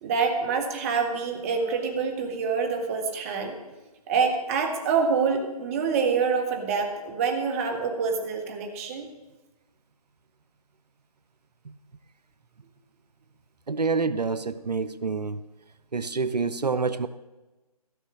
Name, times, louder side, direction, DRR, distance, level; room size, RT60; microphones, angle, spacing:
voice 1, 0.0-3.6 4.1-9.1, right 5 dB, 20° right, 1.5 m, -26 dB
voice 2, 13.7-15.4 15.9-17.1, right 4 dB, 90° right, 0.6 m, -27 dB
15.0 x 6.3 x 6.3 m
figure-of-eight pair, 150°, 20 cm